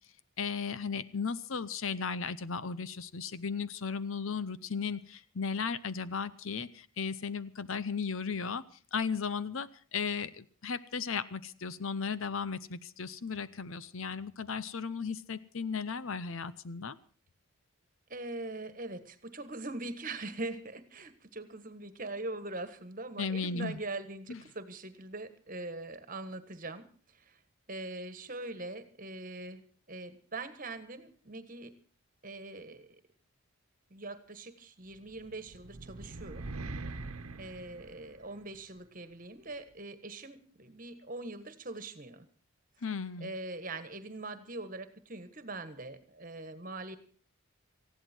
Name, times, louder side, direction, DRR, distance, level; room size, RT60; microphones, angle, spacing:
voice 1, 0.4-8.6 8.9-17.0 23.2-23.8 24.3-24.4 42.8-43.3, left 5 dB, 65° left, 16 dB, 0.7 m, -35 dB
voice 2, 18.1-27.4 27.7-29.6 29.9-31.7 32.2-33.0 33.9-36.5 37.4-42.2 43.2-47.0, right 2 dB, 40° right, 11 dB, 1.6 m, -42 dB
sound 1, 35.1-38.6, right 2 dB, 90° right, 1.2 m, -43 dB
19.0 x 15.5 x 4.5 m, 0.39 s
head